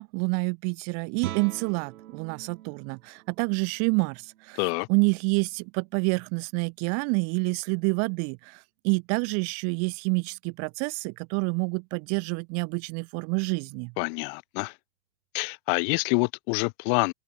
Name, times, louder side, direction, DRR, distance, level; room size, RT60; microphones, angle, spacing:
voice 1, 0.0-4.6 4.9-13.9, right 38 dB, 35° right, 0.8 m, -28 dB
Guitar, 1.2-6.7, right 14 dB, 85° right, 5.9 m, -44 dB
voice 2, 4.6-4.9 14.0-14.7 15.3-17.1, left 39 dB, 35° left, 0.6 m, -26 dB
supercardioid pair, 155°, 43 cm